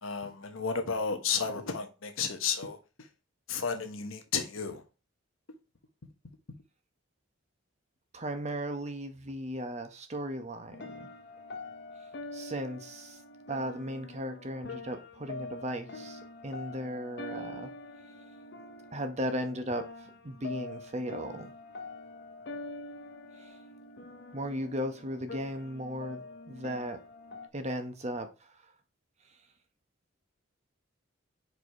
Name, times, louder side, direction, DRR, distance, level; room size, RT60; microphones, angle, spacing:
voice 1, 0.0-2.8 3.5-4.8, left 5 dB, 85° left, 1.2 m, -32 dB
voice 2, 8.1-11.1 12.3-13.2 13.5-17.7 18.9-21.5 23.4-23.5 24.3-27.0 27.5-28.3, equal, 35° right, 0.9 m, -36 dB
sound 1, 10.7-27.5, left 2 dB, 55° left, 0.8 m, -45 dB
4.9 x 4.7 x 4.7 m
head